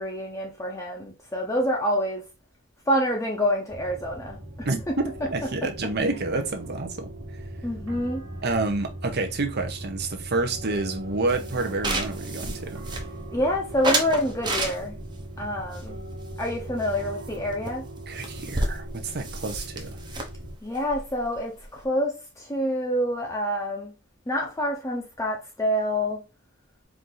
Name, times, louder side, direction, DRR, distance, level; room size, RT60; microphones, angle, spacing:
voice 1, 0.0-2.2 2.9-4.4 4.9-5.0 7.6-8.2 13.3-15.0 15.4-16.0 16.4-17.8 20.6-23.9 24.3-26.2, equal, 15° left, 0.7 m, -27 dB
sound 1, 3.7-20.6, right 1 dB, 80° right, 1.5 m, -39 dB
voice 2, 5.3-7.1 8.4-12.8 18.1-20.0, right 3 dB, 50° right, 0.8 m, -29 dB
sound 2, 11.3-13.4 13.8-15.1 15.7-17.0 17.2-17.4 17.7-17.8 18.0-21.8, right 2 dB, 20° right, 0.8 m, -31 dB
4.6 x 2.6 x 3.8 m
head